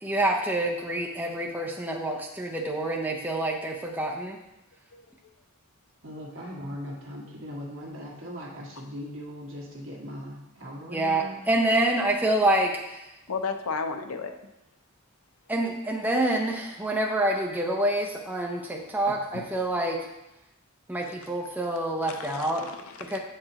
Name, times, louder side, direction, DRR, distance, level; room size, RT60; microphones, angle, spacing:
voice 1, 0.0-4.4 10.9-13.0 15.5-20.0 20.9-22.6 23.1-23.2, right 1 dB, 10° right, -1 dB, 0.5 m, -27 dB
voice 2, 6.0-11.3, equal, 65° right, -4 dB, 1.6 m, -39 dB
voice 3, 13.3-14.3 19.1-19.5 22.1-23.2, left 5 dB, 80° left, 6 dB, 0.6 m, -34 dB
7.7 x 4.7 x 2.9 m, 0.92 s
head